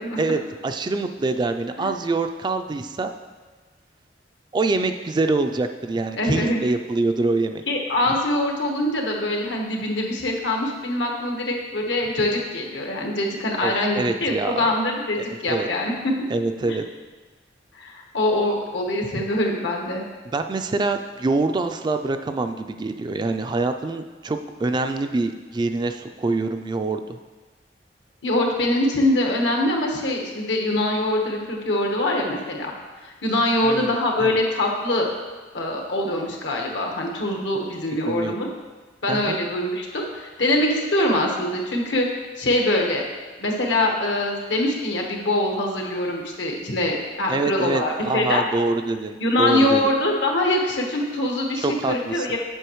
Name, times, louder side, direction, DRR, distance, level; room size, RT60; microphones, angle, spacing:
voice 1, 0.2-3.1 4.5-7.6 8.1-8.2 13.6-14.6 15.3-15.7 16.3-16.8 19.1-19.2 20.3-27.2 33.6-33.9 34.2-34.3 38.1-38.3 39.1-39.4 47.3-49.9 51.6-52.3, right 3 dB, 25° right, 7 dB, 0.3 m, -25 dB
voice 2, 6.2-6.6 7.7-16.1 16.6-16.8 17.7-20.0 28.2-32.7 33.0-35.1 35.5-38.5 39.0-42.1 42.4-43.0 43.4-48.4 49.2-52.4, left 1 dB, 80° left, 0 dB, 1.2 m, -23 dB
7.9 x 6.9 x 3.1 m, 1.3 s
head